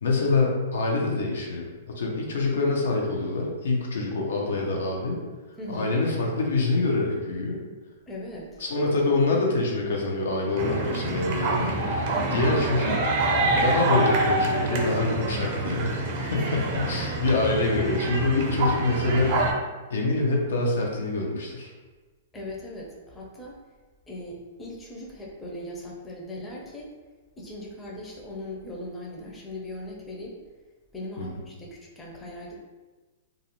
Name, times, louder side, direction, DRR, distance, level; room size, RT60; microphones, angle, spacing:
voice 1, 0.0-5.2 5.7-7.6 8.6-11.8 12.3-12.9 13.6-19.4 19.9-21.7 31.2-31.3, left 3 dB, 80° left, -1 dB, 0.6 m, -25 dB
voice 2, 5.6-5.9 8.1-8.6 12.1-12.4 16.3-16.8 22.3-23.6 24.1-26.9 27.4-30.4 30.9-32.6, left 1 dB, 15° left, -3 dB, 0.5 m, -39 dB
sound 1, 10.6-19.5, right 2 dB, 45° right, 0.4 m, -26 dB
2.4 x 2.0 x 2.9 m, 1.3 s
hypercardioid pair, 140°, 0 cm